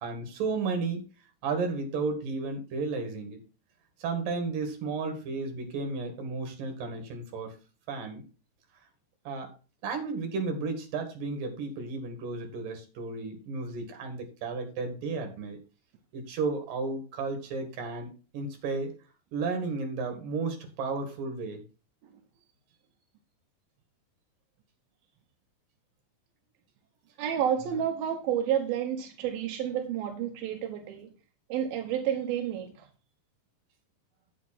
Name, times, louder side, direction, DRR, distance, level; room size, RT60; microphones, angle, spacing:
voice 1, 0.0-1.1 1.4-3.4 4.0-7.6 7.9-8.3 9.3-9.5 9.8-15.6 16.1-18.9 19.3-21.6 27.7-27.8, right 4 dB, 70° right, 3.5 m, -33 dB
voice 2, 27.2-31.1 31.5-32.9, right 9 dB, 90° right, 2.9 m, -30 dB
8.4 x 7.5 x 4.3 m
omnidirectional pair, 4.1 m